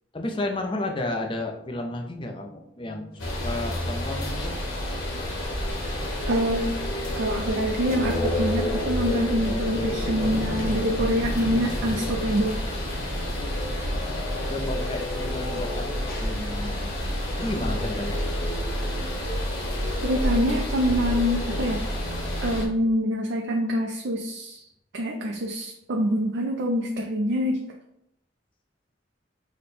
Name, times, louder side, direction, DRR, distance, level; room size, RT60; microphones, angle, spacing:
voice 1, 0.1-4.6 14.0-18.2, left 2 dB, 25° left, 3 dB, 0.5 m, -33 dB
sound 1, 3.1-18.4, equal, 50° left, 1.0 m, -41 dB
sound 2, 3.2-22.6, left 1 dB, 90° left, 1.1 m, -29 dB
voice 2, 6.3-6.8 7.1-12.6 20.0-21.8 22.4-24.6 24.9-27.6, equal, 65° right, 1 dB, 0.4 m, -25 dB
5.0 x 2.2 x 4.2 m, 0.79 s
head